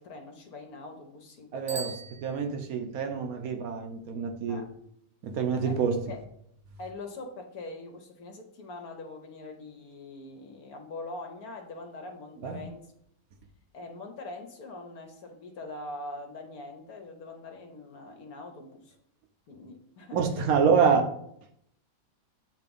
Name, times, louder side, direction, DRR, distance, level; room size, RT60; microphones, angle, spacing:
voice 1, 0.0-2.0 4.5-4.7 5.6-5.8 6.1-6.2 6.8-12.9 13.7-19.0 19.5-20.9, left 2 dB, 60° left, 4 dB, 1.2 m, -43 dB
voice 2, 1.5-1.9 2.2-4.6 5.2-6.0 12.4-12.6 20.1-21.0, right 6 dB, 60° right, 5 dB, 1.3 m, -26 dB
Bicycle bell, 1.6-3.0, right 4 dB, 90° right, 0.3 m, -42 dB
8.3 x 2.9 x 5.2 m, 0.70 s
omnidirectional pair, 1.9 m